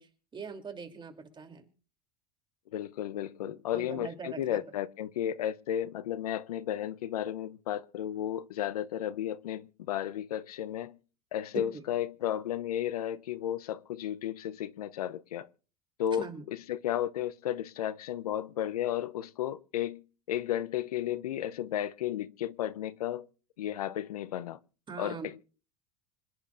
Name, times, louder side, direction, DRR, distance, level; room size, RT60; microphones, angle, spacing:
voice 1, 0.0-1.7 3.4-4.6 11.7-11.8 16.2-16.5 24.9-25.4, right 5 dB, 25° right, 2.9 m, -43 dB
voice 2, 2.7-11.0 11.3-15.5 16.0-23.3 23.6-24.6 25.0-25.4, left 11 dB, 85° left, 0.7 m, -33 dB
26.5 x 10.5 x 2.5 m
hypercardioid pair, 90°, 19 cm